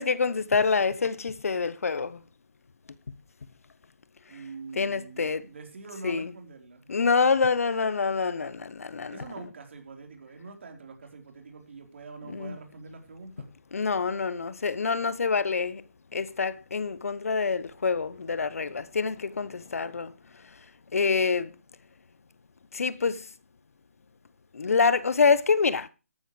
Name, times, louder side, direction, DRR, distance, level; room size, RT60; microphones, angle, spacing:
voice 1, 0.0-2.2 4.7-5.5 6.0-6.3 6.9-9.2 12.3-12.6 13.7-15.8 16.1-20.1 20.9-21.5 22.7-23.3 24.5-25.9, left 5 dB, 65° left, 1.0 m, -26 dB
voice 2, 4.3-6.9 9.1-13.5, right 4 dB, 50° right, 4.3 m, -44 dB
14.0 x 12.0 x 3.3 m
hypercardioid pair, 160°, 8 cm